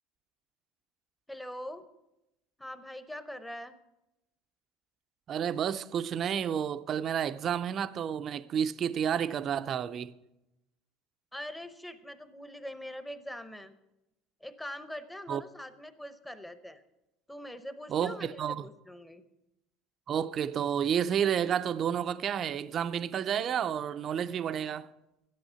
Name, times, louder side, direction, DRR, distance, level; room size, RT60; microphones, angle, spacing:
voice 1, 1.3-1.8 2.6-3.7 11.3-13.7 14.4-16.8 17.3-19.2, left 1 dB, 5° left, 0.7 m, -43 dB
voice 2, 5.3-10.1 15.3-15.4 17.9-18.7 20.1-24.9, right 8 dB, 30° right, 0.4 m, -30 dB
12.5 x 10.5 x 5.6 m
cardioid pair, 160°, 0 cm